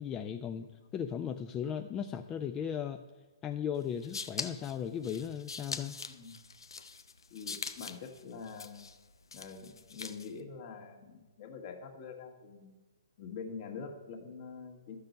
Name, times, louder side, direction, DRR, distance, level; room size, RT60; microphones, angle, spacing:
voice 1, 0.0-0.7 0.9-3.0 3.4-6.0, left 8 dB, 20° left, 7 dB, 0.4 m, -36 dB
sound 1, 3.8-10.4, left 5 dB, 85° left, 0.7 m, -43 dB
voice 2, 6.0-6.4 7.3-8.8 9.3-12.8 13.2-15.0, left 5 dB, 45° left, 3 dB, 1.7 m, -45 dB
12.0 x 6.7 x 5.3 m, 1.2 s
hypercardioid pair, 140°, 2 cm